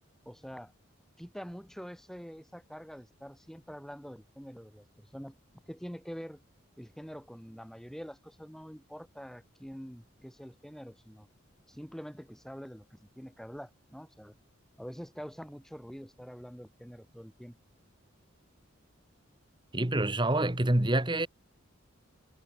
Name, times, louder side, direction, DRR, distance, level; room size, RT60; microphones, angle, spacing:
voice 1, 0.2-0.7 1.2-5.3 5.7-6.4 6.8-11.3 11.7-14.3 14.8-17.5, equal, ahead, 6.6 m, -45 dB
voice 2, 19.7-21.3, right 1 dB, 20° right, 1.4 m, -27 dB
head